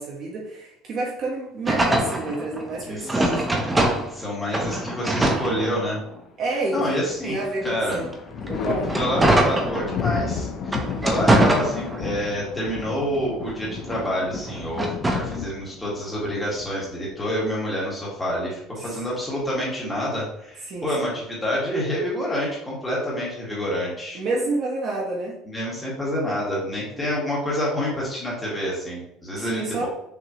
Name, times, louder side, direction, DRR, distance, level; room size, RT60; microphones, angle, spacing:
voice 1, 0.0-3.5 6.4-8.1 8.5-9.0 10.8-11.1 18.8-18.9 20.7-21.1 24.1-25.4 26.9-27.1 29.4-29.9, right 2 dB, 40° right, -2 dB, 0.9 m, -29 dB
sound 1, 1.7-4.2 4.5-6.2 6.7-10.2 10.6-12.3 12.7-15.4, right 1 dB, 10° right, 0.6 m, -24 dB
voice 2, 2.9-3.3 4.1-6.0 6.7-7.4 7.6-8.0 8.9-24.2 25.4-29.9, equal, 10° left, -6 dB, 1.7 m, -28 dB
Thunder, 6.7-7.5 7.8-17.4 18.9-19.7, left 6 dB, 40° left, 0.5 m, -33 dB
6.0 x 2.9 x 2.9 m, 0.80 s
cardioid pair, 165°, 0 cm